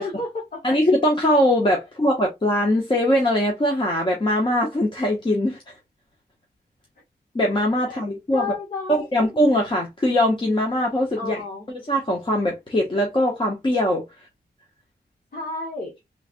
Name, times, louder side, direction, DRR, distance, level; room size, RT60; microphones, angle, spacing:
voice 1, 0.0-0.8 7.8-8.0 8.3-9.1 11.1-11.7 15.3-15.9, left 3 dB, 55° left, 1.2 m, -31 dB
voice 2, 0.6-5.6 7.3-8.5 8.9-11.4 11.9-14.0, left 1 dB, 30° left, 0.8 m, -21 dB
3.2 x 3.2 x 2.4 m
wide cardioid pair, 160°, 17 cm